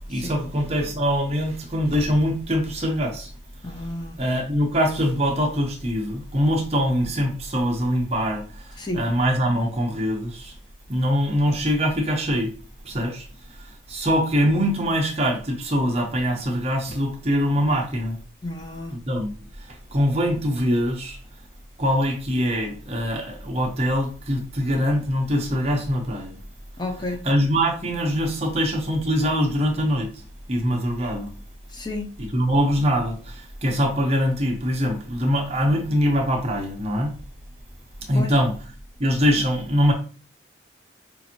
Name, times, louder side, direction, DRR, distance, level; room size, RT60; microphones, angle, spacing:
voice 1, 0.1-3.3 4.2-8.4 8.9-10.5 10.9-12.5 12.8-13.2 13.9-18.2 19.1-19.3 19.9-21.2 21.8-26.4 27.2-30.1 30.5-31.3 32.2-33.2 33.6-37.1 38.1-38.5 39.0-39.9, equal, 35° right, 0.8 m, -23 dB
voice 2, 3.6-4.2 8.8-9.0 18.4-18.9 26.8-27.2 31.7-32.1 38.1-38.3, left 2 dB, 25° left, 0.5 m, -31 dB
5.4 x 2.6 x 2.9 m
head